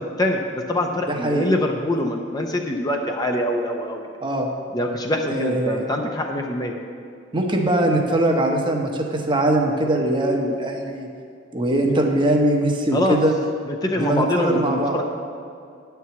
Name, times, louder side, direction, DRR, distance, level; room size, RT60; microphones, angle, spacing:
voice 1, 0.0-4.0 4.7-6.7 12.9-13.2 13.7-15.0, left 1 dB, 20° left, 2 dB, 0.6 m, -24 dB
voice 2, 1.1-1.5 4.2-4.5 5.3-5.9 7.3-11.1 11.5-13.3 13.9-15.0, right 1 dB, 25° right, 2 dB, 0.9 m, -21 dB
10.0 x 4.7 x 7.0 m, 2.4 s
head